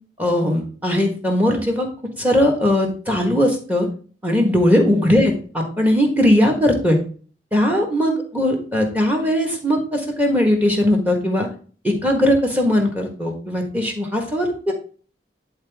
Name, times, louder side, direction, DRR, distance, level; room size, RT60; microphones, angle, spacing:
voice 1, 0.2-1.9 2.2-3.9 4.2-7.0 7.5-11.5 11.8-14.7, left 1 dB, 10° right, 2 dB, 1.4 m, -19 dB
10.5 x 4.0 x 3.5 m, 0.41 s
head